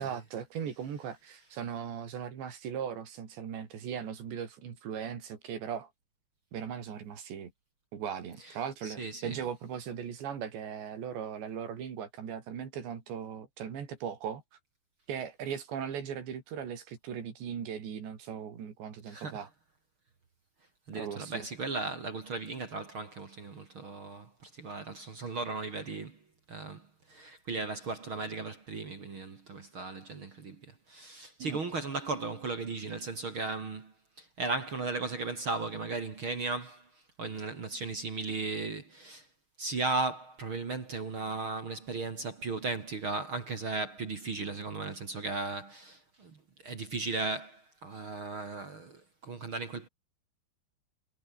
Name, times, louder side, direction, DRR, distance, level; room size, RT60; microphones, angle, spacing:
voice 1, 0.0-5.9 6.5-7.5 7.9-14.4 15.1-19.5 20.9-21.5 31.4-31.6, right 8 dB, 65° right, 6.0 m, -38 dB
voice 2, 8.8-9.4 19.1-19.5 20.9-39.3 39.6-49.9, right 3 dB, 40° right, 2.2 m, -36 dB
omnidirectional pair, 5.5 m